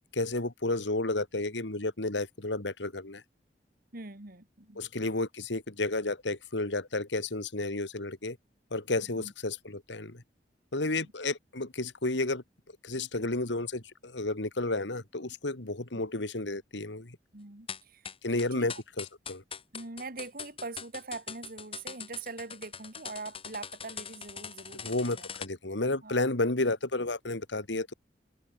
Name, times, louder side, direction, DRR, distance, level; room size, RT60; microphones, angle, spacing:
voice 1, 0.1-3.2 4.8-8.4 8.7-10.2 10.7-12.4 12.8-17.2 18.2-19.4 24.8-27.9, left 2 dB, 85° left, 2.4 m, -32 dB
voice 2, 3.9-4.8 9.2-9.3 10.8-11.1 17.3-18.8 19.7-25.3 26.0-26.2, right 3 dB, 55° right, 2.3 m, -43 dB
sound 1, 17.7-25.5, left 7 dB, 30° left, 3.6 m, -42 dB
head